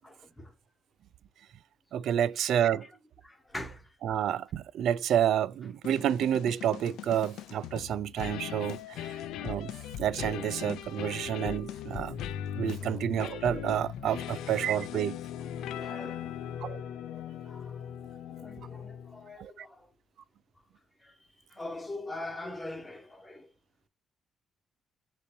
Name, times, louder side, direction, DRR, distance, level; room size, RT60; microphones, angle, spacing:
voice 1, 0.0-0.5 2.4-2.5 3.2-3.9 12.8-13.1 14.2-14.3 15.7-16.3 17.1-19.9 21.0-21.2 21.5-23.5, left 2 dB, 15° left, 1.5 m, -43 dB
voice 2, 1.9-2.9 4.0-9.1 9.4-9.7 10.0-12.2 12.6-15.2 16.6-16.8 19.4-19.5, right 10 dB, 75° right, 0.3 m, -29 dB
sound 1, 5.8-19.3, left 10 dB, 85° left, 0.4 m, -39 dB
6.7 x 2.9 x 2.6 m
cardioid pair, 90°, 0 cm